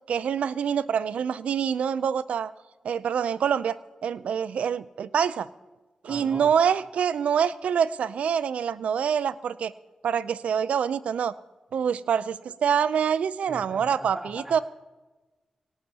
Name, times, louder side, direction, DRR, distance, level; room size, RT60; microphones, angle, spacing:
voice 1, 0.1-2.5 2.8-3.8 4.0-5.5 6.0-9.7 10.0-11.3 11.7-14.6, right 7 dB, 80° right, 16 dB, 0.5 m, -25 dB
voice 2, 6.1-6.5 13.5-14.6, right 1 dB, 20° right, 1 dB, 3.4 m, -40 dB
22.0 x 18.0 x 2.8 m, 1.2 s
cardioid pair, 45°, 2 cm